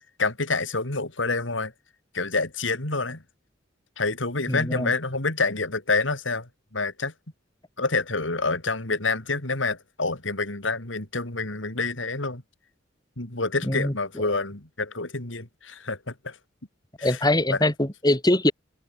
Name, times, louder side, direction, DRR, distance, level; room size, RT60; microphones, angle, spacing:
voice 1, 0.2-1.7 2.1-3.2 4.0-7.1 7.8-12.4 13.2-16.4 17.0-17.2 17.5-17.6, left 3 dB, 80° left, 3.7 m, -27 dB
voice 2, 4.5-4.9 13.7-13.9 17.0-18.5, left 1 dB, 20° left, 3.4 m, -22 dB
head